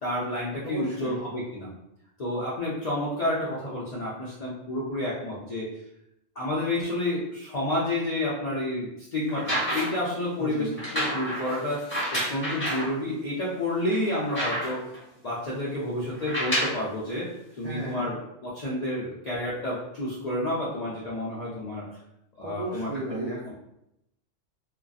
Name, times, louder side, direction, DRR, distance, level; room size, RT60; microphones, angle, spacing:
voice 1, 0.0-1.7 2.2-5.7 6.4-11.8 12.1-14.8 15.2-17.3 17.6-21.8 22.4-23.3, left 1 dB, 65° left, -7 dB, 0.4 m, -30 dB
voice 2, 0.6-1.2 10.4-10.9 17.6-18.1 22.4-23.5, right 2 dB, 70° right, -6 dB, 0.3 m, -35 dB
sound 1, 9.3-10.1 10.8-12.9 13.5-13.6 13.9-15.0 16.1-16.8 17.8-17.9, equal, 10° left, 0.9 m, -29 dB
2.5 x 2.2 x 2.3 m, 0.84 s
omnidirectional pair, 1.3 m